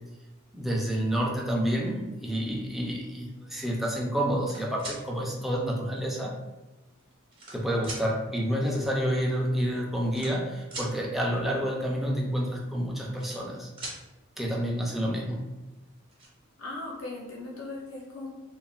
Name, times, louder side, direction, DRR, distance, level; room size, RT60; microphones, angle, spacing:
voice 1, 0.5-6.3 7.5-13.7 14.4-15.5, equal, ahead, -2 dB, 0.4 m, -29 dB
sound 1, 4.2-5.0 6.0-6.1 6.9-7.6 7.8-8.0 9.2-9.3 9.5-9.7 10.0-10.9 12.8-13.5 13.8-14.0 15.5-15.6 15.9-16.3, right 2 dB, 25° right, 0.8 m, -40 dB
voice 2, 16.6-18.3, left 2 dB, 75° left, -3 dB, 0.5 m, -38 dB
3.1 x 2.1 x 2.3 m, 1.1 s
head